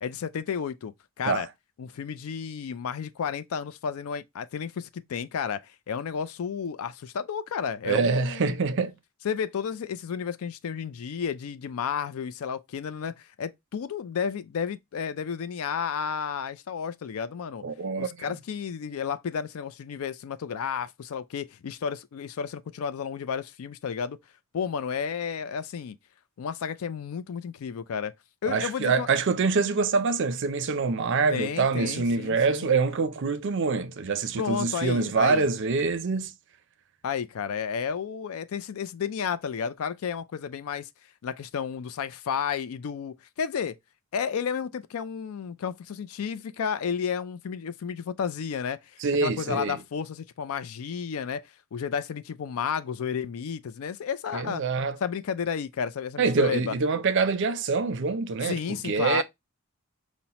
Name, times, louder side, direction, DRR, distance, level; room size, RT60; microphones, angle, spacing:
voice 1, 0.0-1.5 1.8-8.6 9.2-17.6 18.0-24.2 24.5-26.0 26.4-28.1 28.4-29.1 31.3-32.7 34.3-35.5 37.0-40.9 41.2-43.8 44.1-54.6 55.0-56.7 58.4-59.2, left 7 dB, 65° left, 0.4 m, -32 dB
voice 2, 7.8-8.9 17.6-18.1 28.5-36.3 49.0-49.8 54.3-55.0 56.2-59.2, right 4 dB, 55° right, 0.5 m, -25 dB
5.4 x 2.1 x 2.8 m
head